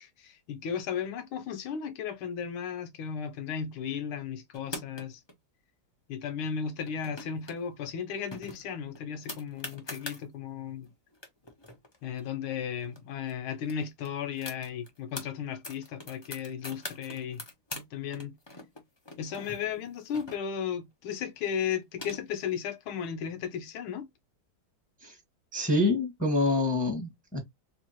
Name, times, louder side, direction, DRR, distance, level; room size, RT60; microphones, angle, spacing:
voice 1, 0.0-5.2 6.1-10.9 12.0-17.4 17.9-18.3 19.2-24.1, left 7 dB, 85° left, 1.7 m, -35 dB
sound 1, 4.5-5.3 6.8-7.6 7.9-8.0 8.3-10.2 10.8-10.9 11.1-13.0 13.3-13.4 13.6-15.3 15.6-17.9 18.1-20.7 21.6-22.5, left 2 dB, 45° left, 0.3 m, -43 dB
voice 2, 25.5-27.4, left 2 dB, 5° right, 1.3 m, -26 dB
3.5 x 3.4 x 3.0 m
omnidirectional pair, 2.3 m